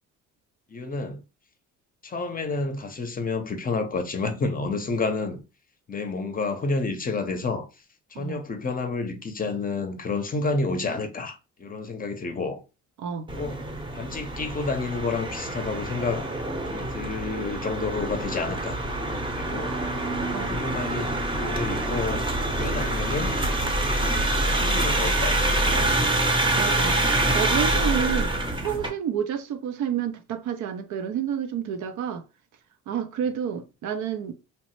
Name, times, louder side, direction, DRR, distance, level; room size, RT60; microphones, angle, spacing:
voice 1, 0.7-1.2 2.0-5.4 5.9-7.7 8.1-12.6 13.3-16.2 16.7-18.8 19.1-19.8 20.5-21.1 21.4-22.2 22.6-23.4 24.5-26.2 28.3-28.5, left 3 dB, 30° left, 0.6 m, -30 dB
sound 1, 13.3-28.9, right 1 dB, 15° right, 0.7 m, -26 dB
voice 2, 26.6-27.0 27.3-32.2 32.9-34.3, right 8 dB, 75° right, 0.5 m, -29 dB
3.0 x 2.0 x 2.9 m
cardioid pair, 90°, 30 cm